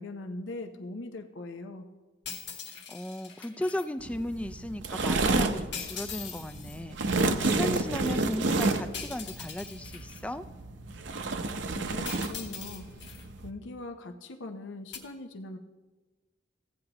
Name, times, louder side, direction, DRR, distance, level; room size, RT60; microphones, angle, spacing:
voice 1, 0.0-1.9 11.7-12.9 13.4-15.6, left 2 dB, 90° left, 6 dB, 0.7 m, -41 dB
sound 1, 2.2-3.9 5.7-6.8 8.9-10.2 12.0-13.2 14.9-15.0, left 7 dB, 70° left, 1.3 m, -41 dB
voice 2, 2.7-10.5, left 1 dB, 5° left, 11 dB, 0.3 m, -36 dB
sound 2, 4.0-13.5, right 3 dB, 75° right, 0.7 m, -30 dB
16.0 x 9.5 x 3.0 m, 1.2 s
head